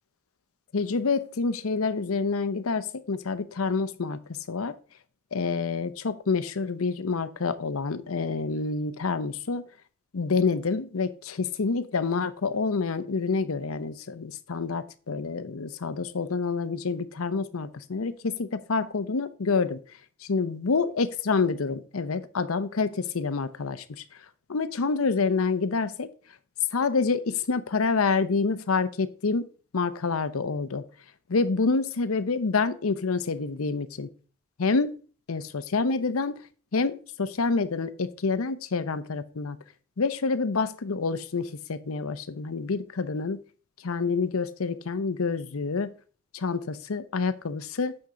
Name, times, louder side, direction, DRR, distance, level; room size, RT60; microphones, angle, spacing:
voice 1, 0.7-4.2 4.5-4.7 5.3-9.6 10.1-19.8 20.2-23.8 24.5-26.1 26.7-29.5 29.7-30.8 31.3-34.1 34.6-34.9 35.3-36.4 36.7-39.6 40.0-43.4 43.8-45.9 46.3-48.1, left 4 dB, 90° left, 13 dB, 0.7 m, -27 dB
8.6 x 6.4 x 3.8 m, 0.40 s
head